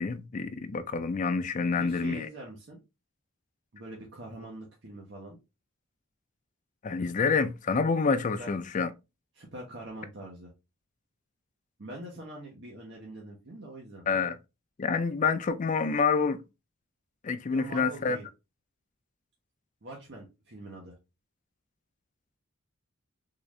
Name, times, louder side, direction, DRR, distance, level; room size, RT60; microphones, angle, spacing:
voice 1, 0.0-2.3 6.8-8.9 14.1-14.4 14.8-16.4 17.2-18.2, left 5 dB, 35° left, 0.4 m, -27 dB
voice 2, 1.6-2.8 3.7-5.4 8.4-8.5 9.3-10.5 11.8-14.0 17.5-18.3 19.8-21.0, right 2 dB, 60° right, 0.9 m, -44 dB
3.8 x 2.5 x 3.0 m
head